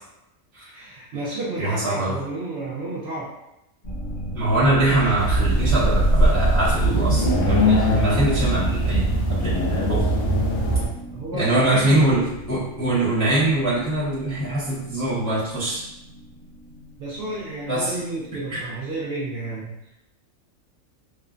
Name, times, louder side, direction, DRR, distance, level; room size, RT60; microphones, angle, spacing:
voice 1, 0.7-3.3 11.1-12.3 17.0-19.7, right 2 dB, 60° right, -6 dB, 0.7 m, -31 dB
voice 2, 1.6-2.1 4.3-10.1 11.3-15.8 17.7-17.9 18.5-18.6, right 1 dB, 25° left, -10 dB, 0.4 m, -23 dB
sound 1, 3.8-19.0, right 1 dB, 45° left, 0.8 m, -37 dB
sound 2, 5.2-10.9, right 1 dB, 75° left, 0.9 m, -20 dB
3.0 x 2.1 x 2.4 m, 0.89 s
omnidirectional pair, 1.4 m